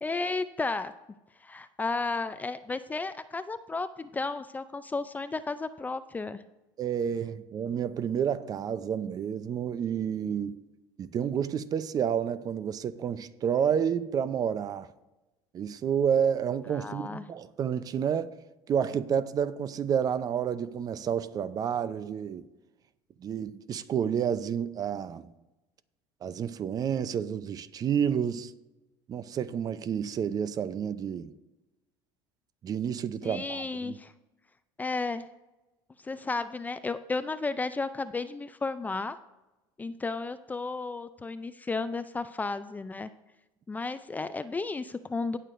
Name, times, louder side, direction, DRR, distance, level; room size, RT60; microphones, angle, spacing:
voice 1, 0.0-0.9 1.4-6.4 16.7-17.2 33.2-34.1 34.8-35.2 36.0-39.2 39.8-43.1 43.7-45.4, left 3 dB, 15° left, 0.4 m, -33 dB
voice 2, 6.8-10.6 11.0-14.9 15.5-18.3 18.7-22.4 23.2-25.3 26.2-28.5 29.1-31.3 32.6-34.0, right 8 dB, 35° right, 0.6 m, -30 dB
18.0 x 6.6 x 2.6 m
supercardioid pair, 105°, 10 cm